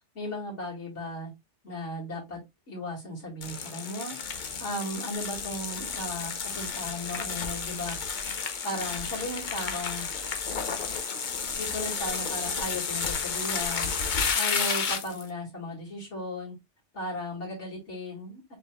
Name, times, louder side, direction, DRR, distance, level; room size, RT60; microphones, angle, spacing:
voice 1, 0.2-1.3 1.6-2.4 2.7-4.2 4.6-8.0 8.6-10.1 11.6-13.9 14.3-16.5 16.9-18.6, left 1 dB, 75° left, -4 dB, 2.4 m, -36 dB
sound 1, 3.4-15.3, left 6 dB, 45° left, 0.8 m, -32 dB
5.8 x 3.7 x 2.2 m, 0.20 s
omnidirectional pair, 1.2 m